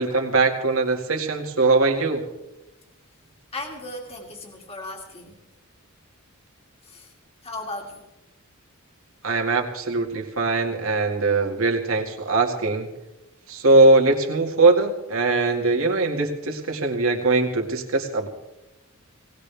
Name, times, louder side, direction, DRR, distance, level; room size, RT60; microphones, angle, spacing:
voice 1, 0.0-2.2 9.2-12.9 13.5-18.3, right 3 dB, 75° right, 2 dB, 2.1 m, -21 dB
voice 2, 3.5-5.4 6.8-7.1 7.4-8.0, left 2 dB, 30° left, 1 dB, 2.5 m, -36 dB
19.0 x 19.0 x 3.5 m, 0.96 s
head